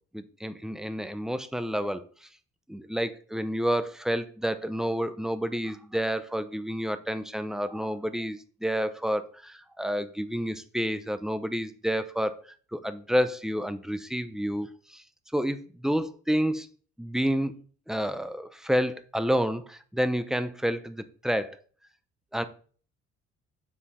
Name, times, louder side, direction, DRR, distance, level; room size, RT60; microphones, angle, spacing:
voice 1, 0.1-2.3 2.7-12.3 12.7-15.0 15.3-16.7 17.0-17.5 17.9-21.6 22.3-22.4, equal, ahead, 0.6 m, -29 dB
7.4 x 3.7 x 4.2 m
cardioid pair, 90°, 30 cm